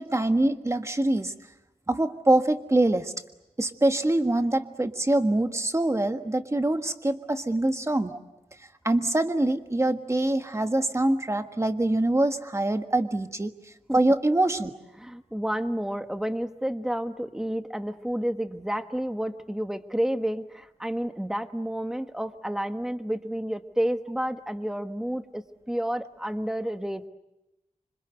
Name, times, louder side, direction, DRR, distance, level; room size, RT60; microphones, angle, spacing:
voice 1, 0.0-1.3 1.9-3.1 3.6-8.2 8.8-13.5 13.9-14.7, right 1 dB, 20° right, 7 dB, 1.5 m, -24 dB
voice 2, 15.0-27.1, equal, 5° right, 8 dB, 1.2 m, -30 dB
26.5 x 25.5 x 8.0 m, 0.96 s
wide cardioid pair, 105°, 13 cm